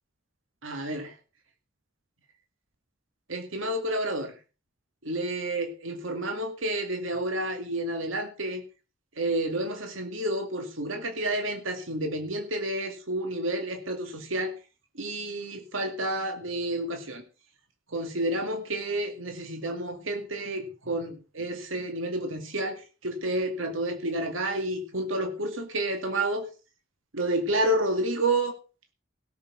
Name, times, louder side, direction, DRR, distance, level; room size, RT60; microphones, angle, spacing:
voice 1, 0.6-1.1 3.3-4.3 5.0-8.6 9.2-14.5 15.0-17.2 17.9-26.5 27.1-28.5, right 1 dB, 80° right, 5 dB, 2.2 m, -30 dB
17.0 x 6.8 x 6.1 m, 0.34 s
head